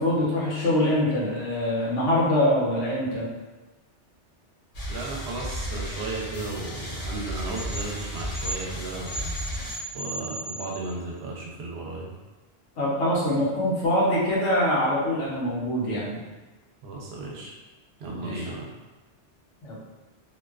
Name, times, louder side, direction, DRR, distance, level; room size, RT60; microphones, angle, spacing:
voice 1, 0.0-3.3 12.8-16.2 18.1-18.4 19.6-19.8, left 1 dB, 75° left, -6 dB, 1.1 m, -24 dB
sound 1, 4.7-9.8, equal, 50° left, 0.5 m, -34 dB
voice 2, 4.9-9.3 9.9-12.1 16.8-17.5 18.0-18.7, right 3 dB, 65° right, -2 dB, 0.8 m, -35 dB
sound 2, 7.6-11.1, right 1 dB, 30° right, 0.9 m, -36 dB
2.5 x 2.2 x 2.3 m, 1.1 s
omnidirectional pair, 1.2 m